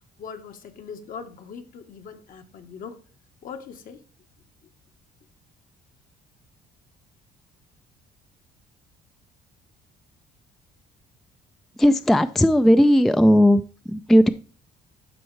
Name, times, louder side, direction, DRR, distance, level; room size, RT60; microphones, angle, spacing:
voice 1, 0.2-3.0 3.4-4.0, left 6 dB, 55° left, 7 dB, 1.1 m, -40 dB
voice 2, 11.8-14.3, equal, ahead, 11 dB, 0.3 m, -17 dB
12.5 x 4.4 x 3.2 m, 0.40 s
cardioid pair, 110°, 17 cm